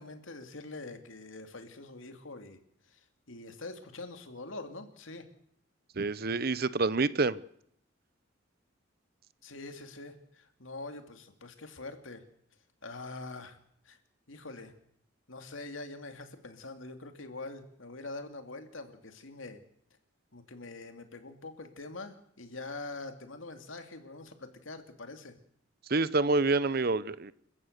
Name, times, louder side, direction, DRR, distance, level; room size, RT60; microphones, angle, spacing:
voice 1, 0.0-2.6 2.9-5.3 9.4-12.2 12.8-13.6 13.8-14.0 14.3-14.7 15.3-19.6 20.3-25.4, left 2 dB, 75° left, 2.6 m, -44 dB
voice 2, 6.0-7.4 25.9-27.3, right 3 dB, 50° right, 0.8 m, -27 dB
29.0 x 15.0 x 6.7 m
head